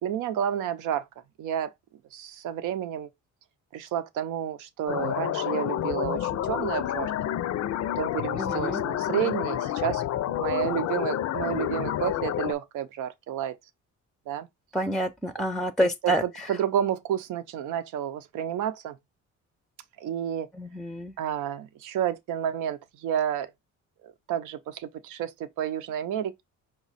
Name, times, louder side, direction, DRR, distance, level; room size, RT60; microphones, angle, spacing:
voice 1, 0.0-1.1 1.4-1.7 2.1-3.1 3.7-7.3 8.0-10.0 10.3-13.6 14.3-14.5 15.8-19.0 20.0-20.5 21.2-23.5 24.0-26.4, right 10 dB, 90° right, 0.7 m, -30 dB
sound 1, 4.9-12.5, left 12 dB, 60° left, 0.5 m, -29 dB
voice 2, 8.4-8.8 14.7-16.2 20.6-21.1, equal, ahead, 0.4 m, -27 dB
5.1 x 2.3 x 4.0 m
cardioid pair, 90°, 30 cm